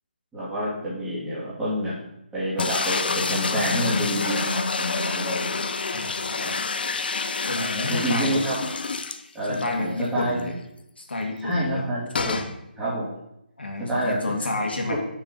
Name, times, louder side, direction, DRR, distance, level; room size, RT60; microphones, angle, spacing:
voice 1, 0.3-1.9 2.3-5.5 6.4-6.5 7.5-8.6 9.3-10.4 11.4-12.3 12.8-13.1 13.8-14.2 14.6-15.0, right 1 dB, 5° right, -9 dB, 2.9 m, -28 dB
sound 1, 2.6-9.7 10.1-10.2 10.4-10.5 12.1-12.5, left 4 dB, 70° left, 0.8 m, -27 dB
voice 2, 5.9-6.6 7.5-8.4 9.5-10.5 11.0-11.9 12.1-12.5 13.6-15.0, left 2 dB, 90° left, 2 dB, 2.1 m, -30 dB
6.5 x 6.4 x 5.6 m, 0.81 s
hypercardioid pair, 160°, 5 cm